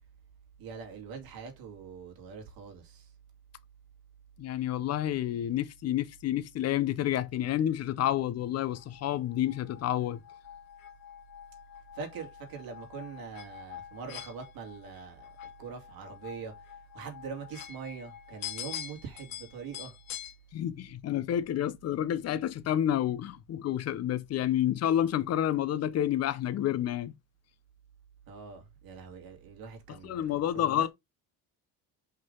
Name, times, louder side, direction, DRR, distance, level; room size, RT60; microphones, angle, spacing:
voice 1, 0.6-3.1 11.9-16.5 16.9-20.0 28.3-30.2 30.5-30.9, right 6 dB, 60° right, 2.5 m, -43 dB
voice 2, 4.4-10.2 20.5-27.1 30.0-30.9, left 11 dB, 40° left, 0.6 m, -29 dB
sound 1, 8.6-20.4, left 10 dB, 55° left, 1.6 m, -45 dB
5.4 x 3.8 x 5.3 m
cardioid pair, 170°, 39 cm